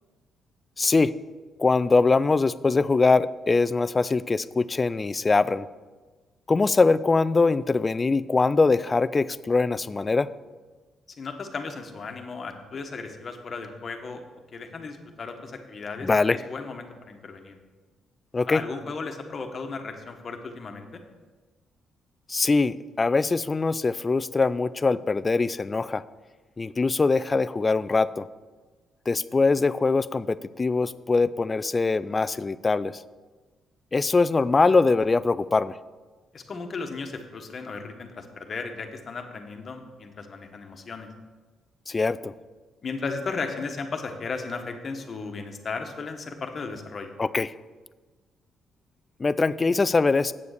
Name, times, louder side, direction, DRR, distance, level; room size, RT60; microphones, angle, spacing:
voice 1, 0.8-1.1 1.6-5.7 6.5-10.3 16.0-16.4 18.3-18.6 22.3-26.0 26.6-28.3 29.1-33.0 33.9-35.8 41.9-42.3 47.2-47.5 49.2-50.3, left 3 dB, 30° left, 16 dB, 0.3 m, -22 dB
voice 2, 11.2-14.2 14.5-17.6 18.5-21.0 36.3-41.1 42.8-47.1, left 4 dB, 45° left, 5 dB, 1.3 m, -35 dB
8.5 x 6.9 x 6.6 m, 1.3 s
cardioid pair, 90°, 0 cm